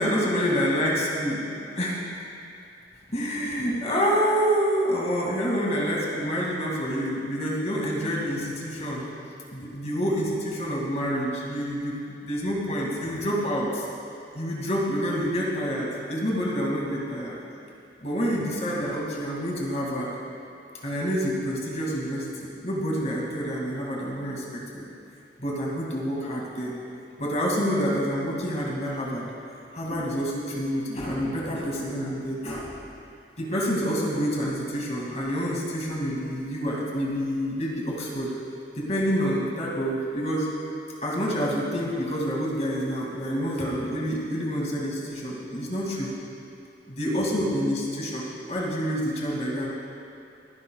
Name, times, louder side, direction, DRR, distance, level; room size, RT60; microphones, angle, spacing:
voice 1, 0.0-1.4 1.8-2.0 3.1-9.0 9.5-11.9 12.2-13.8 14.3-17.4 18.0-20.1 20.8-24.9 25.4-26.7 27.2-29.3 29.7-32.8 33.4-38.3 38.7-40.5 41.0-46.1 46.9-49.7, equal, 40° left, -3 dB, 2.3 m, -27 dB
24.5 x 11.0 x 2.4 m, 2.7 s
head